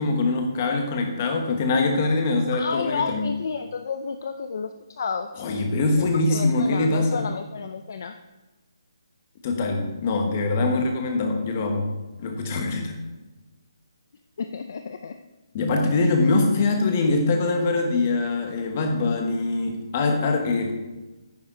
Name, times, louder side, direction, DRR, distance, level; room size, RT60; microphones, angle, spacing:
voice 1, 0.0-3.3 5.4-7.2 9.4-11.9 12.2-12.9 15.5-20.7, left 3 dB, 25° left, 3 dB, 1.3 m, -23 dB
voice 2, 2.5-5.3 6.0-8.2 14.4-15.1, left 5 dB, 40° left, 7 dB, 0.5 m, -31 dB
9.6 x 9.6 x 3.8 m, 1.1 s
hypercardioid pair, 175°, 3 cm